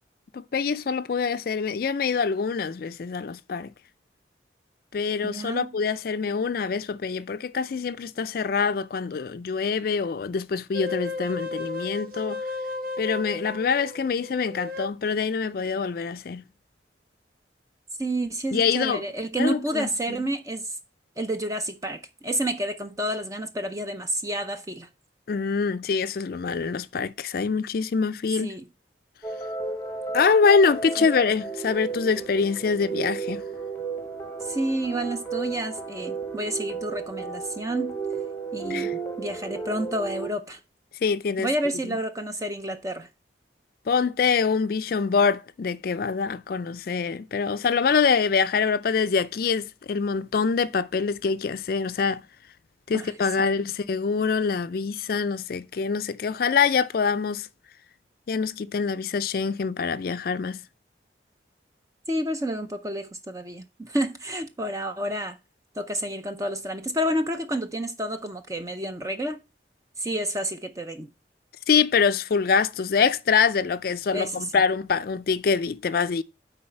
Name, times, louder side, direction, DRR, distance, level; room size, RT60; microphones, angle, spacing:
voice 1, 0.3-3.7 4.9-12.4 13.0-16.4 18.5-19.0 19.4-19.9 25.3-28.5 30.1-33.4 38.7-38.9 41.0-41.5 41.8-42.0 43.9-52.2 52.9-57.5 58.3-60.6 71.7-76.2, left 5 dB, 50° left, 0.4 m, -25 dB
voice 2, 5.2-5.7 18.0-20.8 21.2-24.9 28.4-28.6 34.4-38.0 38.5-40.6 41.4-43.1 52.9-53.6 62.1-65.4 65.8-69.4 70.0-71.1 74.1-74.3, right 1 dB, 20° right, 0.5 m, -30 dB
sound 1, 10.7-14.9, left 2 dB, 50° right, 1.2 m, -34 dB
sound 2, 29.2-40.3, right 4 dB, 15° left, 1.0 m, -33 dB
9.6 x 4.0 x 4.4 m
head